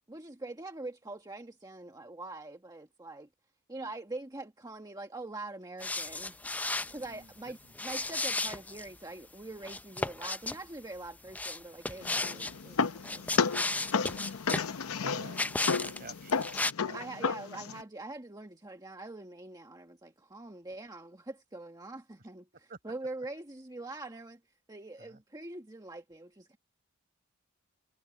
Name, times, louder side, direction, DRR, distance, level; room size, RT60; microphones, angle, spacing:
voice 1, 0.1-3.3 3.7-6.4 6.9-14.4 16.9-22.5 22.8-24.4 24.7-26.6, right 2 dB, 20° right, 1.5 m, -44 dB
sound 1, 5.8-7.0 7.7-8.9 9.6-10.6 11.3-12.5 13.0-14.7 15.3-16.0 16.3-16.7, left 2 dB, 5° left, 0.4 m, -34 dB
voice 2, 7.0-7.7 15.0-17.1 22.7-22.8 25.0-25.2, right 4 dB, 45° right, 5.0 m, -50 dB
sound 2, 12.0-17.8, left 5 dB, 90° left, 0.7 m, -32 dB
head